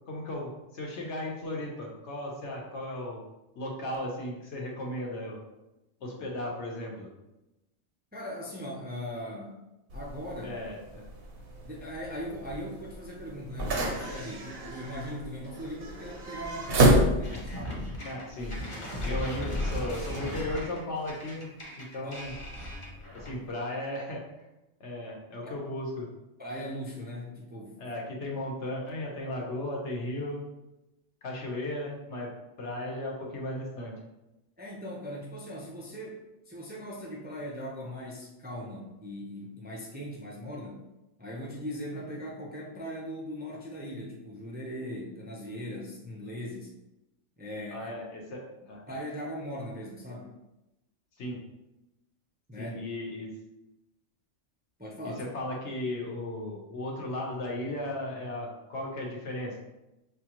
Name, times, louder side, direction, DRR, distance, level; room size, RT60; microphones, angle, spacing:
voice 1, 0.1-3.2 3.5-5.4 6.0-7.1 10.4-11.0 18.0-18.6 19.0-21.5 21.8-22.3 23.1-24.2 24.8-26.1 27.8-30.4 31.2-32.3 32.6-33.9 47.7-48.8 51.2-51.4 52.6-53.3 55.2-59.6, left 1 dB, 60° left, -1 dB, 1.2 m, -36 dB
voice 2, 8.1-10.6 11.6-18.0 18.8-19.2 22.0-22.1 26.4-27.9 34.6-36.2 36.5-40.9 41.2-46.7 47.4-47.9 48.9-50.3 52.5-52.7 54.8-55.2, equal, 15° right, -3 dB, 0.3 m, -39 dB
sound 1, 9.9-17.6, right 1 dB, 55° right, 0.8 m, -29 dB
sound 2, 17.2-23.5, left 1 dB, 25° left, 0.9 m, -36 dB
5.8 x 2.4 x 2.9 m, 0.96 s
omnidirectional pair, 1.3 m